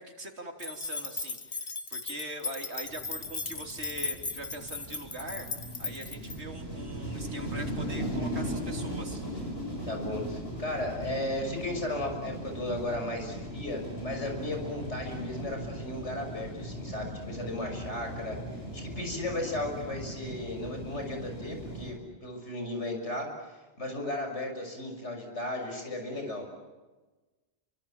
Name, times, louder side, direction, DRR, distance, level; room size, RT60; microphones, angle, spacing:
voice 1, 0.0-5.5 5.8-9.2, right 1 dB, 75° right, 3 dB, 3.8 m, -42 dB
sound 1, 0.6-6.4, left 4 dB, 45° left, 1.4 m, -37 dB
sound 2, 2.8-21.9, equal, 60° left, 7.1 m, -38 dB
voice 2, 9.9-18.4 18.7-23.3 23.8-26.5, left 1 dB, 90° left, 3 dB, 6.6 m, -35 dB
28.5 x 25.0 x 7.4 m, 1.2 s
omnidirectional pair, 1.2 m